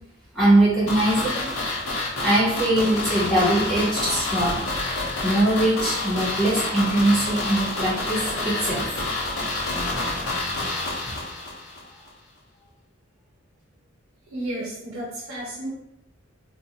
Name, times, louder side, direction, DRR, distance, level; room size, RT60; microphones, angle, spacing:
voice 1, 0.3-1.5 2.2-4.6 5.2-8.9, right 1 dB, 5° left, -11 dB, 1.2 m, -21 dB
sound 1, 0.9-11.8 12.1-12.2, left 2 dB, 80° left, 0.8 m, -28 dB
voice 2, 14.3-15.7, right 1 dB, 80° right, -6 dB, 0.8 m, -32 dB
2.6 x 2.5 x 2.8 m, 0.84 s
head